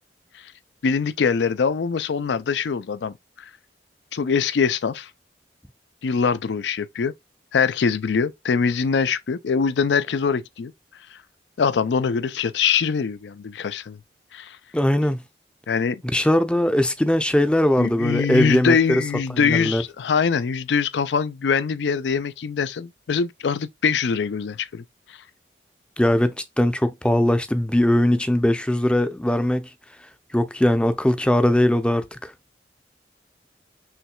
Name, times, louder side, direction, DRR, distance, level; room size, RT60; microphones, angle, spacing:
voice 1, 0.8-3.5 4.1-5.1 6.0-7.1 7.5-10.7 11.6-14.0 14.3-14.6 15.7-16.0 17.8-24.8, left 6 dB, 80° left, 0.4 m, -23 dB
voice 2, 14.7-15.2 16.1-19.0 19.4-19.8 26.0-29.7 30.3-32.3, left 1 dB, 5° left, 0.5 m, -20 dB
5.7 x 3.2 x 2.2 m
head